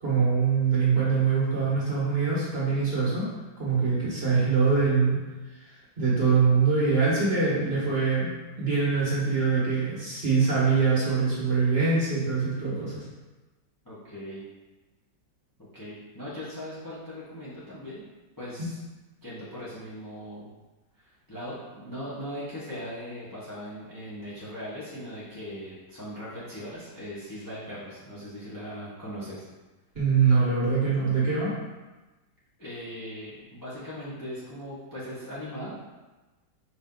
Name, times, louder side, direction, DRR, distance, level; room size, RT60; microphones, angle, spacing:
voice 1, 0.0-3.2 3.6-5.2 6.0-13.0 29.9-31.5, right 5 dB, 35° right, -8 dB, 1.4 m, -23 dB
voice 2, 13.8-14.4 15.6-18.1 18.4-18.8 19.2-20.5 21.0-29.4 32.6-35.8, equal, 15° left, -9 dB, 0.7 m, -39 dB
5.1 x 2.7 x 3.8 m, 1.2 s
omnidirectional pair, 1.9 m